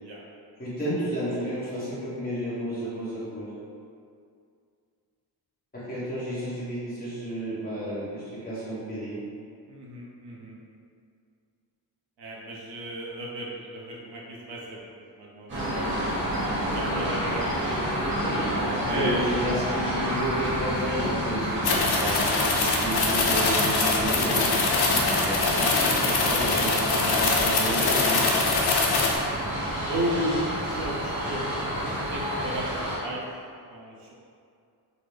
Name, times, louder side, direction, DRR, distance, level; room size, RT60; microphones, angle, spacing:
voice 1, 0.6-3.5 5.7-9.2 18.2-24.4 24.8-28.5 30.1-30.2, right 1 dB, 20° left, -11 dB, 1.1 m, -32 dB
voice 2, 9.7-10.6 12.2-14.8 15.2-16.0 16.7-19.5 21.9-22.1 24.8-25.2 28.8-29.0 29.9-31.5 32.1-33.2 33.7-34.1, right 1 dB, 85° right, -4 dB, 0.8 m, -34 dB
sound 1, 15.5-33.0, equal, 30° right, 1.0 m, -29 dB
sound 2, 21.6-29.2, left 3 dB, 70° left, 0.6 m, -24 dB
3.8 x 2.1 x 3.2 m, 2.3 s
wide cardioid pair, 170°, 40 cm